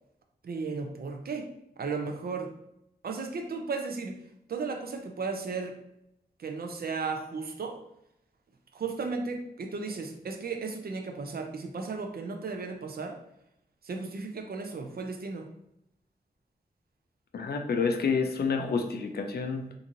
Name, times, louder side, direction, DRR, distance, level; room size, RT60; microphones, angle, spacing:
voice 1, 0.4-1.5 1.8-2.5 3.0-4.2 4.5-5.8 6.4-7.8 8.7-13.2 13.8-15.5, right 4 dB, 65° right, 3 dB, 0.5 m, -35 dB
voice 2, 17.3-19.7, left 5 dB, 75° left, 5 dB, 0.4 m, -29 dB
2.9 x 2.5 x 2.6 m, 0.80 s
wide cardioid pair, 65°, 17 cm